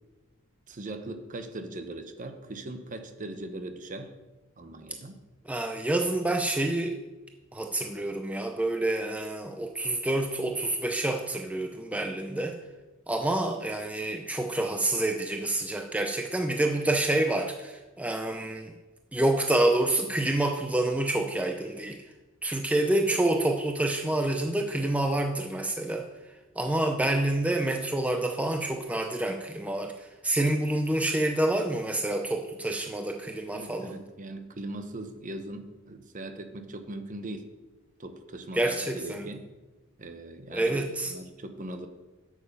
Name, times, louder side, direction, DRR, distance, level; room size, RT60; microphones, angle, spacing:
voice 1, 0.7-4.1 4.6-5.2 33.5-37.5 38.0-39.5 40.0-41.9, right 2 dB, 40° right, 8 dB, 0.8 m, -40 dB
voice 2, 5.5-7.0 7.5-12.6 13.1-18.7 19.1-22.0 22.4-26.1 26.6-33.9 38.5-39.3 40.5-41.1, right 1 dB, 5° right, 4 dB, 0.5 m, -28 dB
8.4 x 7.4 x 5.3 m, 1.2 s
head